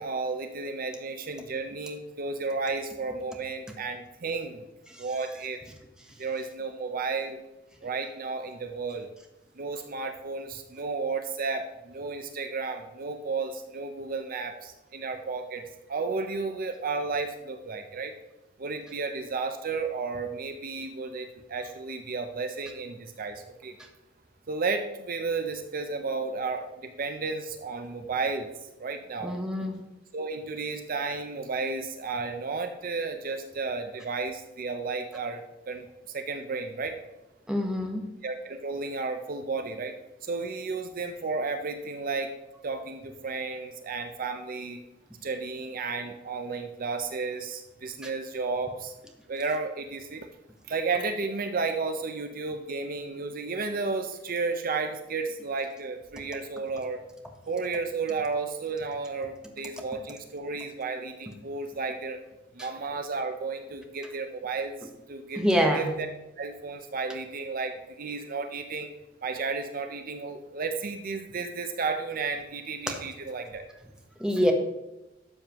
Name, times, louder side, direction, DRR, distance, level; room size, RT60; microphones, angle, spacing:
voice 1, 0.0-4.6 5.0-5.6 6.2-7.4 7.8-9.1 9.6-15.6 15.9-18.1 18.6-23.8 24.5-28.5 28.8-29.4 30.1-37.0 38.2-40.0 40.2-42.3 42.6-44.8 45.2-48.9 49.3-50.3 50.7-57.0 57.5-62.2 62.5-65.4 65.7-66.1 66.4-68.9 69.2-73.6 74.4-74.5, right 4 dB, 50° right, 7 dB, 0.6 m, -33 dB
voice 2, 29.2-29.8 37.5-38.0 65.4-65.9 74.2-74.5, equal, 5° right, 2 dB, 1.1 m, -25 dB
12.0 x 7.3 x 3.0 m, 0.95 s
head